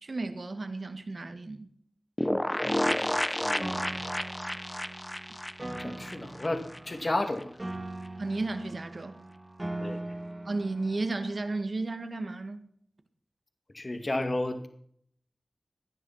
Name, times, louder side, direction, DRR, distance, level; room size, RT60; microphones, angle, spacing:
voice 1, 0.0-1.7 5.9-6.0 8.2-9.2 10.5-12.7, right 3 dB, 60° right, 1.9 m, -33 dB
sound 1, 2.2-6.8 7.1-7.2 7.4-7.5, left 1 dB, 15° left, 1.0 m, -31 dB
voice 2, 2.8-3.9 5.7-7.5 9.8-10.0 13.7-14.7, left 2 dB, 40° left, 2.1 m, -33 dB
Piano, 3.6-11.6, right 2 dB, 25° right, 1.9 m, -41 dB
17.5 x 11.0 x 5.8 m
wide cardioid pair, 70°, 0 cm